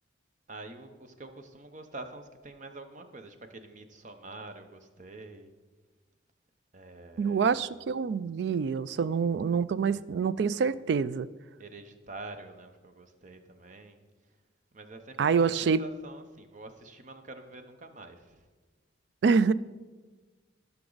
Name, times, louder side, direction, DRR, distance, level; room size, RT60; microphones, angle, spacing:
voice 1, 0.5-5.5 6.7-7.6 8.9-9.6 11.6-14.4 14.7-18.5, right 2 dB, 40° right, 0.8 m, -46 dB
voice 2, 7.2-11.3 15.2-15.8 19.2-19.5, right 5 dB, 60° right, 0.3 m, -26 dB
15.0 x 6.0 x 3.9 m
head